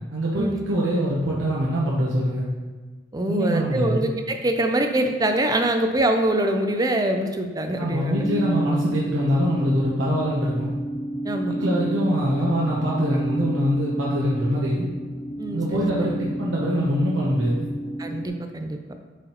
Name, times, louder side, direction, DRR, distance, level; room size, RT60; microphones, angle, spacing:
voice 1, 0.1-2.5 3.3-4.0 7.8-10.7 11.5-14.9 15.5-17.7, equal, 80° right, -5 dB, 1.0 m, -24 dB
voice 2, 3.1-8.1 11.2-11.8 15.4-15.9 18.0-18.8, right 1 dB, 20° right, 5 dB, 0.5 m, -24 dB
sound 1, 8.1-18.3, right 1 dB, 20° left, 0.6 m, -30 dB
7.7 x 5.0 x 3.0 m, 1.4 s
head